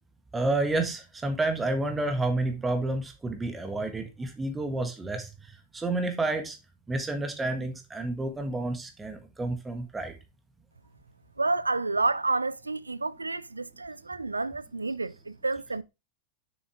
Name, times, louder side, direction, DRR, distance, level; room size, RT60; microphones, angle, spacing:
voice 1, 0.3-6.6 6.9-10.1, right 2 dB, 10° right, 1.5 m, -30 dB
voice 2, 11.4-15.8, right 3 dB, 80° right, 0.4 m, -29 dB
7.0 x 6.9 x 3.5 m
figure-of-eight pair, 90°, 0 cm